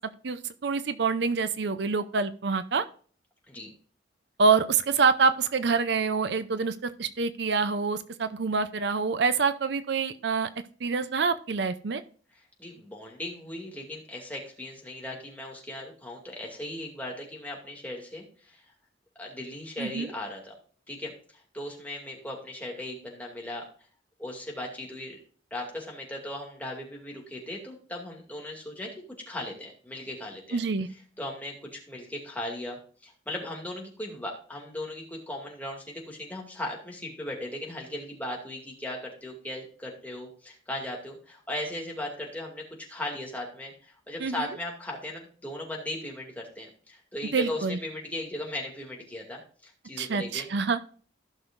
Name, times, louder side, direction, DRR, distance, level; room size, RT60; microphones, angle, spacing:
voice 1, 0.2-2.9 4.4-10.5 10.8-12.0 19.8-20.1 30.5-30.9 44.2-44.5 47.3-47.8 50.0-50.8, right 4 dB, 60° right, 12 dB, 0.5 m, -26 dB
voice 2, 12.3-18.6 19.2-20.6 20.9-23.7 24.2-25.2 25.5-30.6 30.9-50.5, left 1 dB, 10° left, -1 dB, 2.4 m, -38 dB
15.5 x 6.3 x 2.5 m, 0.43 s
head